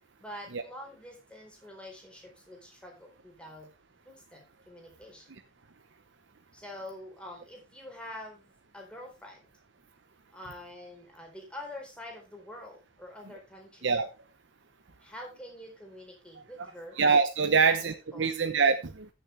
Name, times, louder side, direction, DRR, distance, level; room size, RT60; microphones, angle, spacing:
voice 1, 0.2-3.7 4.0-5.3 6.5-9.4 10.3-13.9 15.0-17.0 17.5-17.8 18.1-18.4, left 1 dB, 5° left, 0 dB, 4.1 m, -46 dB
voice 2, 17.0-19.1, right 5 dB, 70° right, 8 dB, 0.8 m, -24 dB
14.5 x 7.1 x 3.3 m, 0.26 s
head